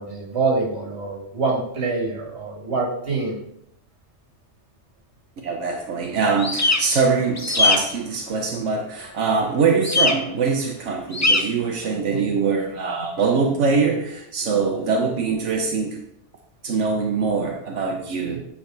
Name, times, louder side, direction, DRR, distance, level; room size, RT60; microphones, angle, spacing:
voice 1, 0.0-3.4 12.1-12.3, right 3 dB, 65° right, 0 dB, 2.1 m, -25 dB
voice 2, 5.4-16.0 16.6-18.4, right 5 dB, 80° right, 2 dB, 1.2 m, -23 dB
sound 1, 6.4-6.8 7.4-7.8 9.8-10.1 11.1-11.4, left 2 dB, 20° left, 0.6 m, -19 dB
9.2 x 4.0 x 4.7 m, 0.74 s
omnidirectional pair, 1.2 m